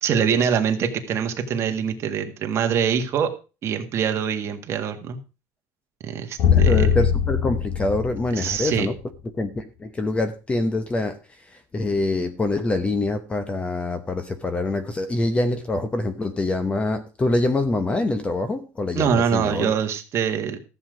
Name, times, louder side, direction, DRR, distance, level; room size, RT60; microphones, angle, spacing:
voice 1, 0.0-3.3 3.6-5.2 6.0-6.9 8.3-8.9 18.9-20.6, right 7 dB, 35° right, 1.7 m, -24 dB
sound 1, 6.4-9.0, left 8 dB, 45° left, 2.2 m, -21 dB
voice 2, 6.5-8.9 9.3-19.7, left 2 dB, 15° left, 0.9 m, -25 dB
14.0 x 7.8 x 5.1 m
cardioid pair, 160°, 8 cm